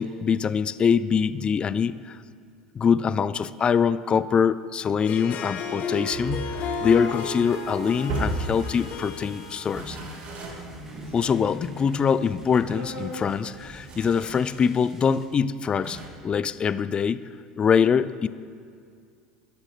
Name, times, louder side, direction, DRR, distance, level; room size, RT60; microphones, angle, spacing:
voice 1, 0.0-2.2 2.7-10.0 11.1-17.3 17.6-18.3, left 6 dB, 30° left, 16 dB, 0.4 m, -24 dB
Harp, 4.9-10.4, left 4 dB, 45° left, 1.0 m, -34 dB
sound 1, 5.7-15.2, right 1 dB, 15° right, 2.2 m, -54 dB
sound 2, 6.0-9.2 9.6-14.8 15.2-15.3 15.8-16.1, right 2 dB, 45° right, 2.3 m, -36 dB
12.5 x 11.5 x 3.2 m, 2.2 s
hypercardioid pair, 70°, 3 cm